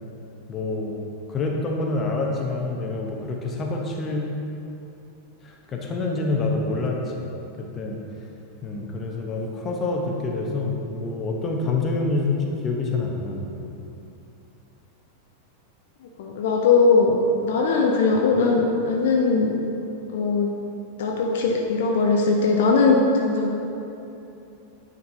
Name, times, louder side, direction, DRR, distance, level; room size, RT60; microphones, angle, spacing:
voice 1, 0.5-1.0 1.3-4.3 5.4-7.3 7.6-8.0 8.6-13.6, left 3 dB, 25° left, 0 dB, 0.9 m, -27 dB
voice 2, 16.2-19.6 20.1-20.5 21.0-23.5, left 4 dB, 55° left, 0 dB, 0.5 m, -20 dB
9.3 x 5.2 x 2.8 m, 2.8 s
figure-of-eight pair, 90°, 0 cm